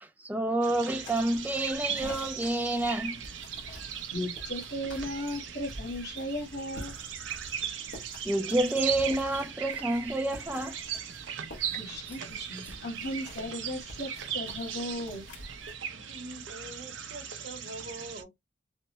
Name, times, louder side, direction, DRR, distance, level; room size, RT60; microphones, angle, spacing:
voice 1, 0.0-3.2 8.2-10.8, right 1 dB, 10° right, 0.4 m, -29 dB
sound 1, 0.6-18.2, right 8 dB, 75° right, 0.5 m, -38 dB
sound 2, 1.0-15.8, left 1 dB, 85° left, 1.6 m, -49 dB
voice 2, 4.1-6.9 11.7-15.2, left 1 dB, 60° left, 1.4 m, -36 dB
voice 3, 15.9-18.3, right 1 dB, 50° right, 0.9 m, -44 dB
3.3 x 2.1 x 2.8 m
head